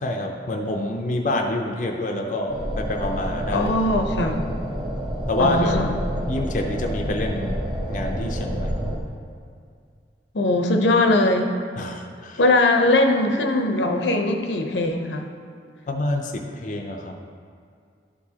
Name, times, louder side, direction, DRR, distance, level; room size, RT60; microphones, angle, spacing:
voice 1, 0.0-3.7 5.3-6.0 6.3-7.6 7.9-8.7 11.8-12.4 15.9-17.1, left 1 dB, 45° left, 2 dB, 0.5 m, -27 dB
sound 1, 2.5-9.0, equal, 25° right, 0.8 m, -28 dB
voice 2, 3.5-4.4 5.4-5.9 10.3-11.5 12.4-15.3, left 2 dB, 80° left, 4 dB, 0.7 m, -20 dB
11.5 x 4.7 x 2.8 m, 2.3 s
head